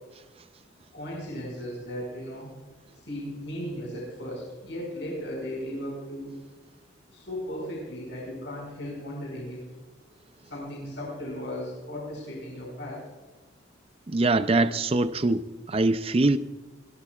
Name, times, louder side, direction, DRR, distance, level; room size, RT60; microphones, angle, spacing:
voice 1, 0.9-2.5 2.9-6.3 7.1-9.6 10.4-13.0, equal, 65° left, 5.7 m, -36 dB
voice 2, 14.1-16.4, right 2 dB, 30° right, 0.5 m, -23 dB
22.5 x 17.5 x 2.4 m
head